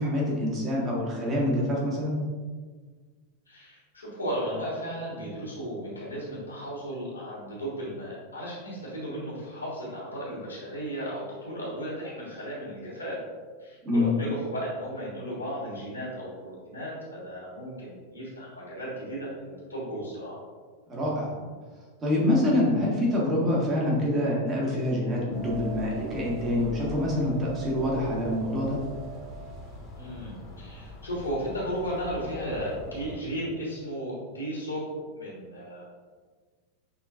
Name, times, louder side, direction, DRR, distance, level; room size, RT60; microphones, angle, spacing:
voice 1, 0.0-2.2 13.8-14.1 20.9-21.3 22.0-28.8, left 1 dB, 25° right, -4 dB, 1.4 m, -26 dB
voice 2, 3.5-13.2 13.6-20.4 29.9-34.8 35.1-35.8, equal, 80° left, -6 dB, 1.5 m, -35 dB
sound 1, 25.3-33.2, right 1 dB, 25° left, 1.1 m, -41 dB
5.8 x 3.3 x 2.5 m, 1.5 s
figure-of-eight pair, 90°, 0 cm